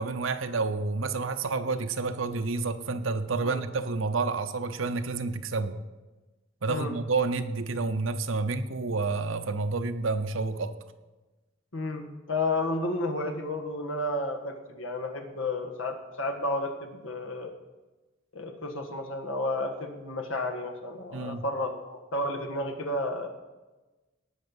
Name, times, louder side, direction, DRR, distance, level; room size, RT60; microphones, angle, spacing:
voice 1, 0.0-5.8 6.6-10.8 21.1-21.4, right 3 dB, 70° right, 10 dB, 0.8 m, -29 dB
voice 2, 11.7-17.5 18.3-23.3, left 2 dB, 80° left, 4 dB, 1.5 m, -32 dB
18.5 x 6.4 x 5.5 m, 1.2 s
head